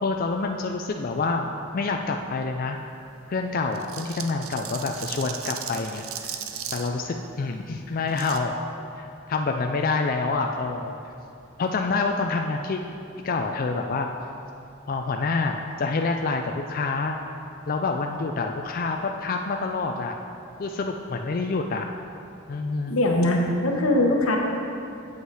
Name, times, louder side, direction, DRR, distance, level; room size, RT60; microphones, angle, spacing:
voice 1, 0.0-2.8 3.3-6.3 6.7-8.5 9.0-10.9 11.6-12.8 13.2-14.1 14.9-17.2 17.7-20.1 20.6-21.9 22.5-22.9, left 3 dB, 45° left, 3 dB, 0.4 m, -27 dB
sound 1, 3.7-6.9 8.1-8.4, right 9 dB, 85° right, 0.6 m, -36 dB
voice 2, 22.8-24.4, left 1 dB, 85° left, 1 dB, 1.2 m, -21 dB
8.1 x 8.1 x 4.8 m, 2.6 s
head